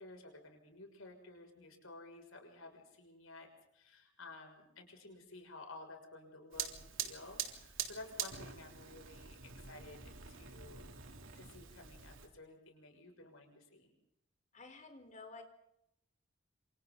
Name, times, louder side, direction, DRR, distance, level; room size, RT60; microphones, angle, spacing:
voice 1, 0.0-3.5 3.7-10.0 10.3-13.9, left 2 dB, 90° left, 3 dB, 6.5 m, -53 dB
Fire, 6.5-12.3, right 9 dB, 70° right, 3.4 m, -45 dB
voice 2, 14.5-15.4, left 3 dB, 35° left, 5 dB, 4.3 m, -52 dB
28.0 x 27.5 x 4.0 m, 0.79 s
head